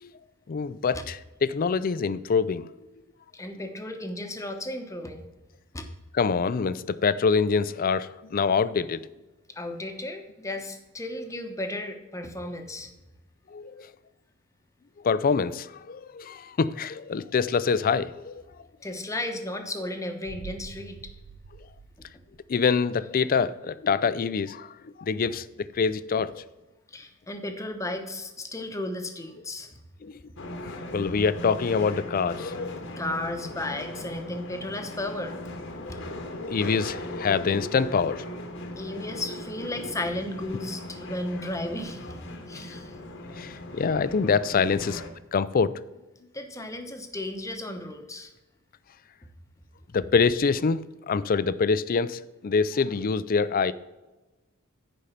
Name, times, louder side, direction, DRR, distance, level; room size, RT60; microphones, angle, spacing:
voice 1, 0.5-2.7 6.1-9.1 13.5-13.9 15.0-18.4 22.5-25.5 25.7-26.4 30.0-30.2 30.9-32.9 35.8-36.0 36.4-38.2 42.5-42.6 43.0-45.0 45.3-45.8 49.9-53.7, left 5 dB, 45° left, 0.4 m, -25 dB
voice 2, 3.3-5.2 5.7-5.8 9.5-12.9 18.8-21.0 26.9-29.7 33.0-35.3 38.8-42.1 42.5-42.9 46.3-48.3, left 1 dB, 15° left, 1.0 m, -34 dB
sound 1, 20.2-22.9 23.2-23.3, right 5 dB, 90° right, 0.5 m, -46 dB
sound 2, 30.4-45.1, left 1 dB, 60° left, 1.1 m, -38 dB
9.8 x 5.3 x 5.7 m
head